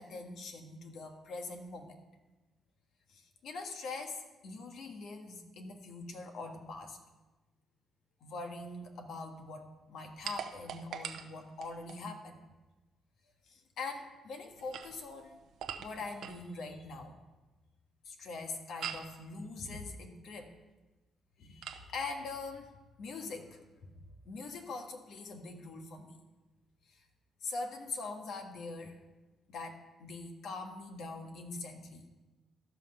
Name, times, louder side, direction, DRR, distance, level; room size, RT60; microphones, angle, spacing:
voice 1, 0.0-2.0 3.1-7.0 8.2-12.4 13.5-15.4 15.8-17.2 18.0-20.6 21.4-23.9 24.2-26.2 26.9-27.0 27.4-29.0 29.5-32.1, left 3 dB, 70° left, 4 dB, 1.4 m, -43 dB
sound 1, 10.2-12.0 14.5-16.5 18.8-19.2 21.6-21.9, right 8 dB, 75° right, 0.8 m, -43 dB
13.0 x 5.9 x 5.5 m, 1.1 s
cardioid pair, 90°, 0 cm